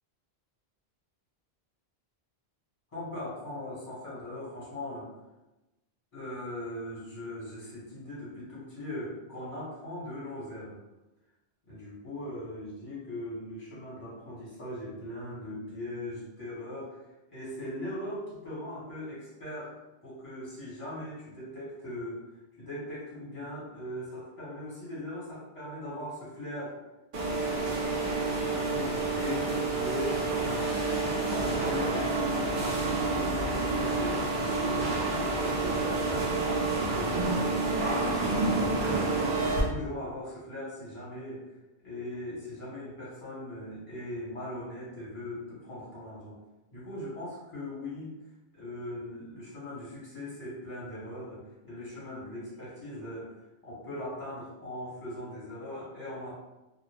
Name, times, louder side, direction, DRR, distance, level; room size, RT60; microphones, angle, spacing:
voice 1, 2.9-5.1 6.1-10.8 11.7-17.0 17.3-19.8 20.0-22.2 22.6-26.8 27.2-41.4 41.8-46.4 46.7-48.1 48.5-53.3 53.6-56.3, left 1 dB, 30° left, -7 dB, 1.1 m, -40 dB
sound 1, 27.1-39.6, right 3 dB, 55° right, 0.7 m, -29 dB
2.4 x 2.0 x 3.2 m, 1.0 s
omnidirectional pair, 1.1 m